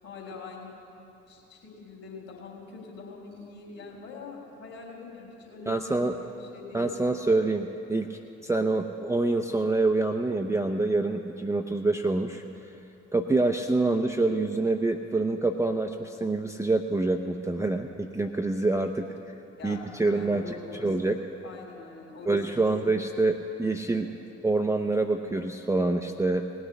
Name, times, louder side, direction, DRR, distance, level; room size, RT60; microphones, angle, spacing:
voice 1, 0.0-0.7 1.3-6.8 19.6-20.9 21.4-22.7 23.9-24.1, left 4 dB, 45° left, 0 dB, 3.5 m, -44 dB
voice 2, 5.7-6.1 6.7-12.4 13.1-19.1 19.6-20.5 20.8-21.2 22.3-24.1 24.4-26.7, right 2 dB, 10° right, 4 dB, 0.6 m, -26 dB
18.0 x 6.4 x 8.2 m, 2.9 s
figure-of-eight pair, 45°, 34 cm